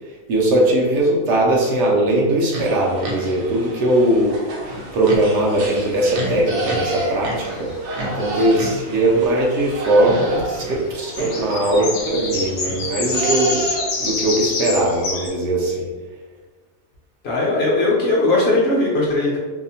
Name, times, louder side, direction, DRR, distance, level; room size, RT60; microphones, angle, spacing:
voice 1, 0.3-4.4 4.9-7.7 8.0-13.6 14.0-15.9, right 1 dB, 70° right, -2 dB, 0.8 m, -19 dB
sound 1, 2.5-14.2, right 2 dB, 90° right, 1.0 m, -30 dB
sound 2, 4.0-4.1 5.8-7.7 9.7-9.8 10.4-15.3, left 3 dB, 80° left, 1.0 m, -27 dB
voice 2, 17.2-19.4, left 2 dB, 60° left, -4 dB, 0.8 m, -18 dB
2.7 x 2.0 x 2.7 m, 1.4 s
omnidirectional pair, 1.4 m